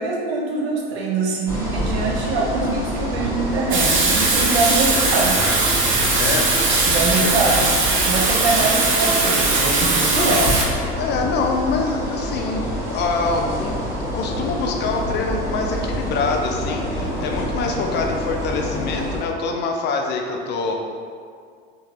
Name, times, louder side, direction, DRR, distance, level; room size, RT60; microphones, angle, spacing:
voice 1, 0.0-5.4 6.8-10.4, right 3 dB, 80° right, -1 dB, 0.7 m, -23 dB
sound 1, 1.5-19.2, equal, 10° right, 1.1 m, -27 dB
Water tap faucet / Sink (filling or washing), 3.7-10.7, right 3 dB, 40° right, 0.6 m, -19 dB
voice 2, 6.1-6.6 7.2-7.3 10.1-10.6 11.0-13.7 14.1-20.7, left 4 dB, 35° left, 2 dB, 0.4 m, -25 dB
3.1 x 2.6 x 2.4 m, 2.1 s
hypercardioid pair, 95°, 31 cm